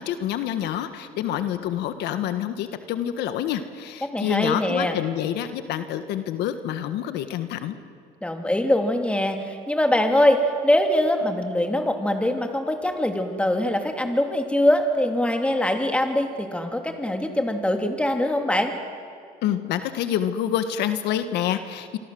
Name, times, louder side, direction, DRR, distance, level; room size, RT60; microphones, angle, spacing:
voice 1, 0.0-7.8 19.4-22.0, left 10 dB, 85° left, 9 dB, 1.6 m, -27 dB
voice 2, 4.0-5.0 8.2-18.7, left 1 dB, 5° left, 4 dB, 3.1 m, -23 dB
26.5 x 25.0 x 7.9 m, 2.3 s
cardioid pair, 110°, 17 cm